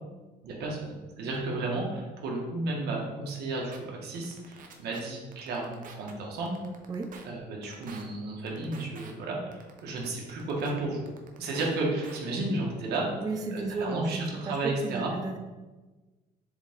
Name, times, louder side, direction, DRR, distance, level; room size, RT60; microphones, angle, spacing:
voice 1, 0.4-6.5 7.2-11.0 11.4-13.1 13.5-15.1, right 2 dB, 75° right, -2 dB, 1.7 m, -33 dB
sound 1, 3.3-3.4 3.7-3.8 4.1-5.0 5.3-6.1 6.5-7.2 7.6-8.0 8.5-9.1 9.5-10.7 11.1-11.7 12.0-12.2, right 5 dB, 50° right, 0.9 m, -47 dB
voice 2, 13.2-15.4, right 3 dB, 20° right, 5 dB, 0.4 m, -33 dB
7.2 x 3.8 x 3.7 m, 1.2 s
cardioid pair, 110°, 17 cm